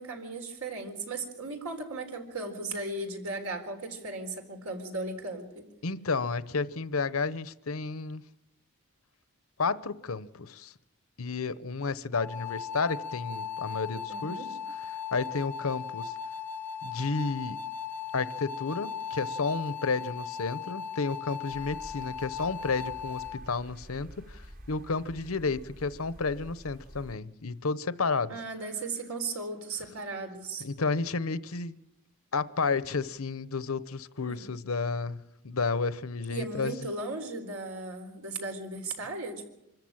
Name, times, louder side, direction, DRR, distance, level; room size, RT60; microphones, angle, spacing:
voice 1, 0.0-5.6 14.1-14.5 28.3-30.7 34.3-34.4 36.3-39.5, right 3 dB, 80° right, 4.0 m, -36 dB
voice 2, 5.8-8.2 9.6-10.7 11.2-14.4 15.1-16.1 16.8-17.6 18.1-28.4 30.6-31.8 32.3-36.7, left 4 dB, 80° left, 0.9 m, -31 dB
sound 1, 12.1-23.4, left 7 dB, 10° left, 0.8 m, -37 dB
sound 2, 21.5-27.2, equal, 40° right, 1.4 m, -49 dB
25.5 x 14.0 x 8.8 m
head